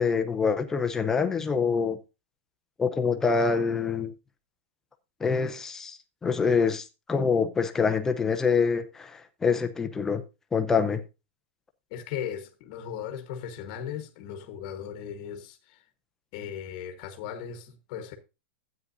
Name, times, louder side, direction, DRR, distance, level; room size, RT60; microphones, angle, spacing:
voice 1, 0.0-2.0 2.8-4.1 5.2-10.2 10.5-11.0, left 5 dB, 5° left, 0.6 m, -25 dB
voice 2, 11.9-15.8 16.3-18.1, left 8 dB, 30° left, 1.2 m, -37 dB
12.5 x 8.9 x 2.6 m
supercardioid pair, 180°, 7 cm